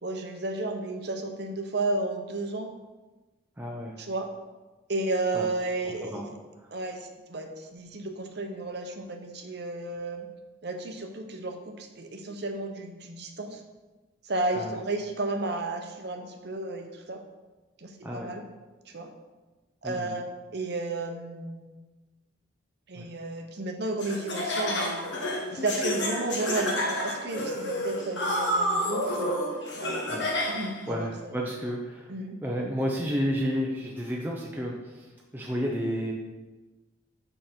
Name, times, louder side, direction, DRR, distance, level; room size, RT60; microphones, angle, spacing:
voice 1, 0.0-2.7 4.0-4.3 4.9-6.3 6.7-7.0 7.3-10.3 10.6-13.6 14.3-17.2 17.8-18.4 18.9-19.1 19.8-20.3 20.5-21.7 22.9-25.1 25.5-29.4 29.8-30.0 30.5-31.3 32.1-32.4, right 2 dB, 55° right, 4 dB, 0.8 m, -33 dB
voice 2, 3.6-4.0 5.3-5.5 6.1-6.3 6.6-6.7 14.6-14.8 18.0-18.3 19.8-20.1 23.0-23.1 30.1-30.5 30.9-32.1 32.4-36.1, equal, 10° right, -2 dB, 0.5 m, -31 dB
Laughter, 24.0-30.8, left 1 dB, 65° left, 1.1 m, -29 dB
5.8 x 5.4 x 4.3 m, 1.2 s
head